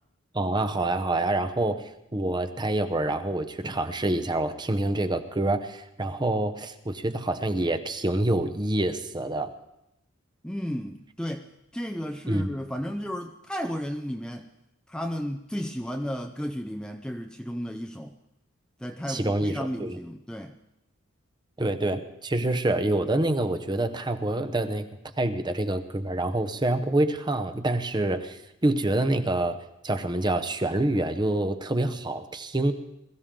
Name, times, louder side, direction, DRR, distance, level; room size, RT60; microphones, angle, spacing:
voice 1, 0.3-1.8 2.1-9.5 12.3-12.5 19.1-20.0 21.6-24.9 25.2-29.6 29.8-32.7, right 1 dB, 20° right, 8 dB, 0.8 m, -26 dB
voice 2, 10.4-14.5 14.9-18.1 18.8-20.6, equal, 5° left, 5 dB, 0.5 m, -33 dB
21.5 x 14.5 x 3.8 m, 0.84 s
head